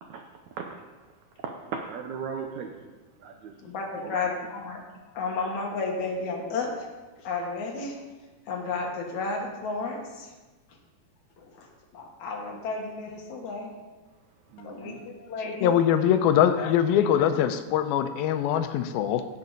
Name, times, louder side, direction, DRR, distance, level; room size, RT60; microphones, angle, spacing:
voice 1, 1.4-2.9 3.2-3.5 4.0-4.2 14.5-15.0, right 6 dB, 90° right, 4 dB, 1.6 m, -37 dB
voice 2, 3.6-4.8 5.1-6.9 7.2-8.0 8.5-10.3 11.4-11.7 11.9-13.7 14.6-15.7, left 3 dB, 60° left, 0 dB, 2.5 m, -32 dB
voice 3, 14.8-19.2, left 9 dB, 85° left, 9 dB, 2.4 m, -23 dB
16.0 x 7.3 x 4.0 m, 1.2 s
omnidirectional pair, 4.3 m